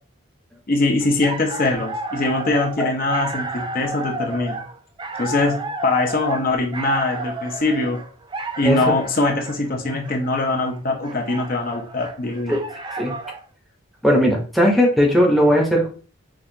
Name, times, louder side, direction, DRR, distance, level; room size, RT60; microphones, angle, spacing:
voice 1, 0.7-4.6 5.2-8.0 8.6-12.6, left 2 dB, 45° left, 2 dB, 0.7 m, -22 dB
sound 1, 1.0-13.4, right 2 dB, 20° right, 0.3 m, -32 dB
voice 2, 14.0-15.9, equal, ahead, 0 dB, 0.7 m, -17 dB
6.1 x 2.3 x 2.7 m, 0.39 s
head